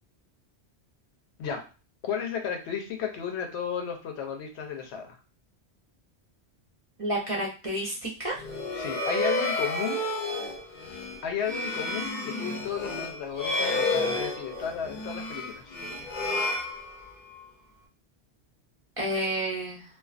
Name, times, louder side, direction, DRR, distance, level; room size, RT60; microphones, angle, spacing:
voice 1, 2.0-5.2 8.7-10.1 11.2-15.8, left 7 dB, 85° left, 4 dB, 0.9 m, -33 dB
voice 2, 7.0-8.4 19.0-19.8, right 1 dB, 40° right, -3 dB, 0.6 m, -30 dB
sound 1, 8.3-17.4, left 2 dB, 55° left, 0.6 m, -31 dB
2.4 x 2.3 x 2.4 m, 0.33 s
omnidirectional pair, 1.1 m